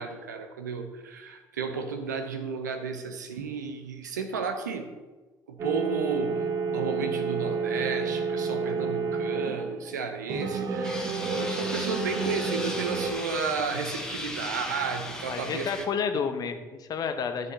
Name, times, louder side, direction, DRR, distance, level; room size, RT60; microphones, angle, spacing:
voice 1, 0.0-4.9 5.5-6.4 6.7-15.7, right 5 dB, 75° right, 6 dB, 0.8 m, -33 dB
sound 1, 5.6-10.0 10.3-13.1, right 4 dB, 40° right, 0.8 m, -30 dB
sound 2, 10.8-15.9, left 1 dB, 5° left, 1.3 m, -37 dB
voice 2, 15.2-17.5, left 6 dB, 40° left, 8 dB, 0.9 m, -30 dB
13.0 x 6.8 x 2.8 m, 1.3 s
figure-of-eight pair, 55°, 10 cm